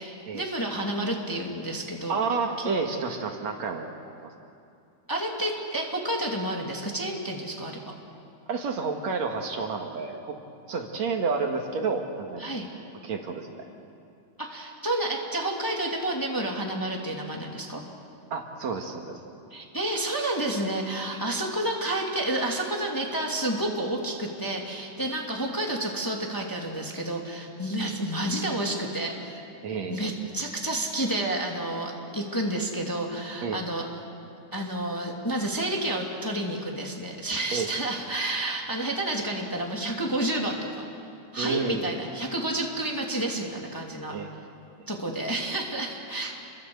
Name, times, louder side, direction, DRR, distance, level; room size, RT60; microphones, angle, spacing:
voice 1, 0.0-2.2 2.6-2.7 5.1-7.9 12.4-12.7 14.4-17.8 19.5-29.4 29.9-33.9 34.5-40.8 41.3-44.2 44.9-46.3, right 1 dB, 5° left, -1 dB, 2.4 m, -30 dB
voice 2, 2.1-3.9 4.2-4.3 8.5-10.4 10.7-12.5 13.0-13.5 18.3-19.2 25.0-25.1 29.6-30.1 33.4-33.6 37.5-37.7 41.4-41.9 44.1-44.3, right 4 dB, 65° right, 3 dB, 2.9 m, -30 dB
29.5 x 24.0 x 8.0 m, 2.5 s
omnidirectional pair, 3.5 m